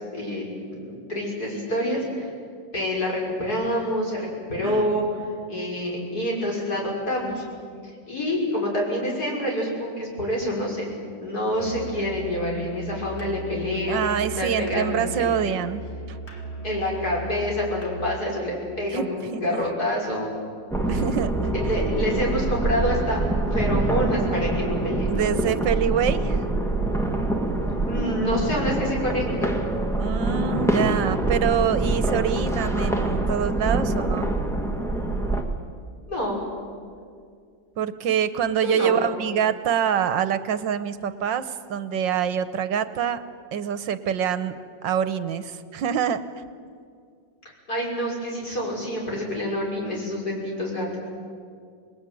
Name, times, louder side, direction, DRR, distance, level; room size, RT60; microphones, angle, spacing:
voice 1, 0.1-2.3 2.7-5.0 5.5-7.4 7.8-10.9 11.2-14.0 14.4-15.4 16.6-20.4 21.5-23.2 23.5-25.1 27.8-29.6 36.1-36.4 38.6-39.0 47.7-51.0, equal, 55° left, -2 dB, 6.7 m, -27 dB
Musical instrument, 11.5-18.3, right 2 dB, 35° left, 2.9 m, -37 dB
voice 2, 13.9-16.2 18.9-19.6 20.9-21.3 25.1-26.4 30.0-34.3 37.8-43.2 43.5-44.6 44.8-46.2, right 8 dB, 80° right, 12 dB, 1.7 m, -25 dB
sound 1, 20.7-35.4, right 2 dB, ahead, 1.7 m, -25 dB
27.5 x 20.5 x 9.2 m, 2.2 s
omnidirectional pair, 2.0 m